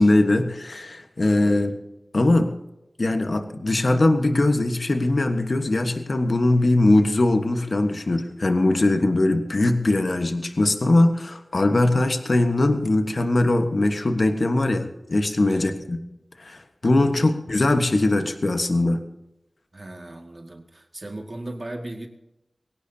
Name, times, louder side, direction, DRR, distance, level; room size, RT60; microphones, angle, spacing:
voice 1, 0.0-1.7 2.1-2.5 3.0-16.0 16.4-19.0, left 2 dB, 55° left, 6 dB, 1.3 m, -21 dB
voice 2, 15.5-15.8 17.0-17.3 19.7-22.1, right 1 dB, 40° right, 2 dB, 2.0 m, -37 dB
22.5 x 17.5 x 2.8 m, 0.92 s
wide cardioid pair, 80°, 0 cm